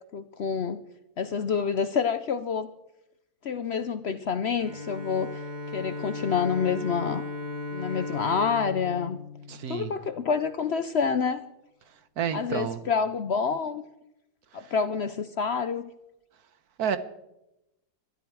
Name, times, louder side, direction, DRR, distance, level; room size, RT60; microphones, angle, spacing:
voice 1, 0.1-0.8 1.2-2.7 3.4-5.4 5.7-7.2 7.7-9.2 9.7-11.4 12.3-13.8 14.5-15.9, left 6 dB, 55° left, 12 dB, 0.7 m, -28 dB
Bowed string instrument, 4.6-10.3, left 3 dB, 30° right, 2.0 m, -37 dB
voice 2, 9.5-9.9 11.9-12.8 14.5-14.7 16.8-17.0, right 8 dB, 75° right, 12 dB, 1.5 m, -31 dB
21.5 x 13.0 x 4.7 m, 0.90 s
omnidirectional pair, 1.6 m